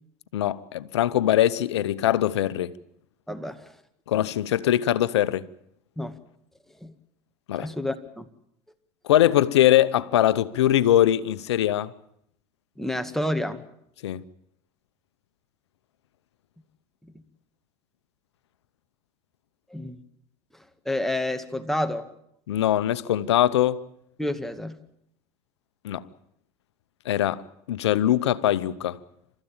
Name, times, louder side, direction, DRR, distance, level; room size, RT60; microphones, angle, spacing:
voice 1, 0.3-2.7 4.1-5.4 7.5-7.7 9.0-11.9 14.0-14.2 22.5-23.8 25.8-26.0 27.1-27.4 27.7-29.0, left 12 dB, 90° left, 0.9 m, -22 dB
voice 2, 3.3-3.7 6.0-6.2 6.8-6.9 7.5-8.3 12.8-13.6 19.7-20.0 20.9-22.0 24.2-24.8, left 1 dB, ahead, 2.0 m, -29 dB
28.5 x 14.0 x 8.9 m
hypercardioid pair, 85°, 14 cm